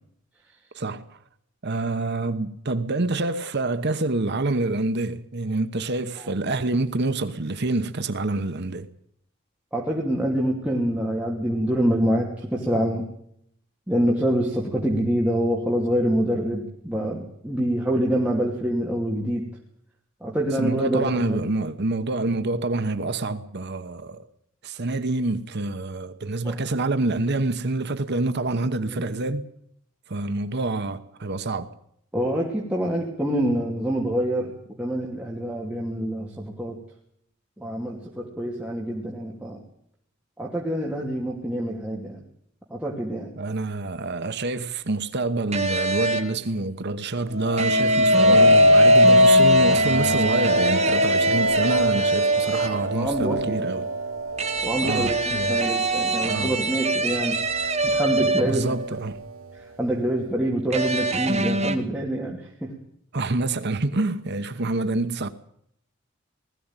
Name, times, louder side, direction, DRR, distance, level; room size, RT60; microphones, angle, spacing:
voice 1, 0.7-1.2 1.6-8.9 20.6-24.3 24.6-29.5 30.1-31.7 43.4-53.9 54.8-55.6 56.2-56.6 58.2-59.2 63.1-65.3, right 2 dB, 55° right, 1.0 m, -27 dB
voice 2, 9.7-13.0 13.9-19.4 20.2-21.4 26.4-26.6 28.6-29.0 32.1-34.5 34.8-36.8 37.6-39.6 40.4-42.2 42.7-43.3 48.3-48.6 52.9-53.7 54.6-58.7 59.5-62.7, right 1 dB, 5° right, 2.8 m, -26 dB
sound 1, 45.5-46.4 47.6-52.9 54.4-58.7 60.7-61.8, right 3 dB, 35° right, 2.1 m, -25 dB
sound 2, 47.4-56.5 57.1-57.5, left 1 dB, 80° right, 1.2 m, -20 dB
20.0 x 14.5 x 9.0 m
head